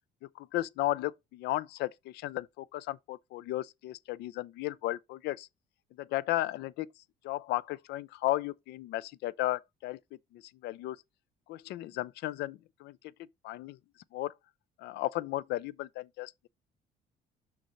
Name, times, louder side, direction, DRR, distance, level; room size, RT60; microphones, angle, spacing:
voice 1, 0.2-5.5 6.0-6.9 7.2-10.0 10.3-11.0 11.5-13.0 13.4-13.8 14.1-14.4 14.8-16.3, left 16 dB, 80° left, 0.5 m, -34 dB
6.1 x 5.8 x 3.9 m
cardioid pair, 110°, 17 cm